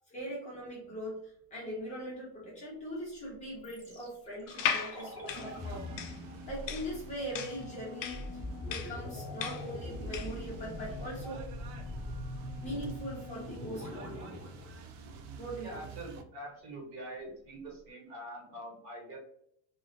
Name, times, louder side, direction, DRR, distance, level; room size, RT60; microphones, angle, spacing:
voice 1, 0.1-6.1 6.5-11.4 12.6-14.5 15.4-15.7, equal, 20° left, -7 dB, 0.5 m, -41 dB
sound 1, 3.6-15.6 15.9-16.0, left 1 dB, 10° right, 0.8 m, -43 dB
sound 2, 4.5-10.4, left 7 dB, 65° left, 0.5 m, -37 dB
sound 3, 5.3-16.2, right 5 dB, 65° right, 0.5 m, -50 dB
voice 2, 15.6-19.2, right 1 dB, 45° right, -1 dB, 1.1 m, -44 dB
2.4 x 2.1 x 2.5 m, 0.67 s
supercardioid pair, 160°, 41 cm